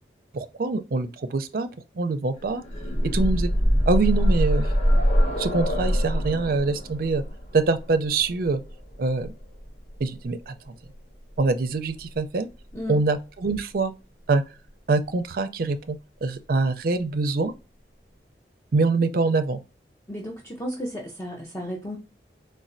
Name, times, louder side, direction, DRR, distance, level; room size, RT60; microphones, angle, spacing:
voice 1, 0.3-1.7 2.0-2.6 3.1-3.5 3.9-4.7 5.4-7.2 7.5-8.6 9.0-9.3 10.0-10.7 11.4-12.5 12.9-13.9 14.3-14.4 14.9-17.5 18.7-19.6, right 3 dB, 55° right, 0.4 m, -24 dB
sound 1, 2.4-10.2 11.4-11.5 11.9-12.0, equal, 40° left, 0.8 m, -24 dB
voice 2, 20.1-22.0, equal, 15° left, 0.5 m, -33 dB
4.2 x 2.2 x 2.5 m
head